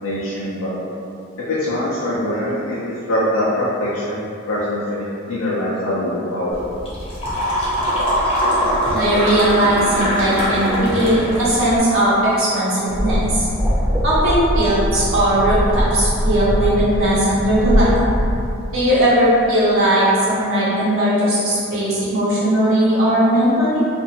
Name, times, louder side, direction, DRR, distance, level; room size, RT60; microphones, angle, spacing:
voice 1, 0.0-0.7 1.5-2.8 3.1-6.6, left 1 dB, 85° left, -9 dB, 0.5 m, -23 dB
sound 1, 6.5-11.8, equal, 30° left, 0.7 m, -22 dB
voice 2, 8.9-13.5 14.0-17.9 18.7-23.9, right 1 dB, 75° right, -9 dB, 0.9 m, -18 dB
sound 2, 12.9-18.4, equal, 10° right, 0.6 m, -21 dB
2.5 x 2.4 x 2.8 m, 2.7 s
head